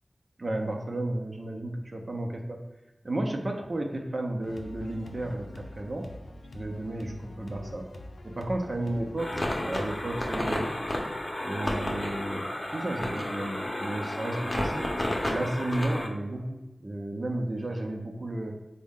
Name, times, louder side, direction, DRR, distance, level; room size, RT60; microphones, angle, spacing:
voice 1, 0.4-2.6 3.0-6.1 6.5-7.9 8.2-9.3 9.6-10.7 11.4-12.4 12.7-14.9 15.3-18.6, right 1 dB, 55° right, 3 dB, 0.5 m, -33 dB
sound 1, 4.4-10.6, left 1 dB, 85° left, 0.4 m, -44 dB
sound 2, 9.2-16.1, left 1 dB, 40° left, 0.7 m, -31 dB
3.6 x 2.1 x 3.5 m, 1.0 s
cardioid pair, 40°, 0 cm